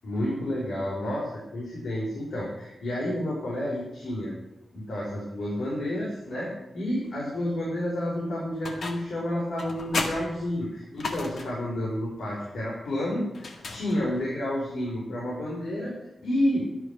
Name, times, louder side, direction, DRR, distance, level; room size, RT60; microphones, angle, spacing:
voice 1, 0.0-4.3 4.7-15.9 16.2-16.7, left 1 dB, 90° left, -5 dB, 4.8 m, -30 dB
sound 1, 8.6-9.2 9.6-11.7 13.3-14.3, left 3 dB, 65° left, 1.7 m, -34 dB
12.5 x 11.0 x 6.1 m, 0.88 s
wide cardioid pair, 155°, 0 cm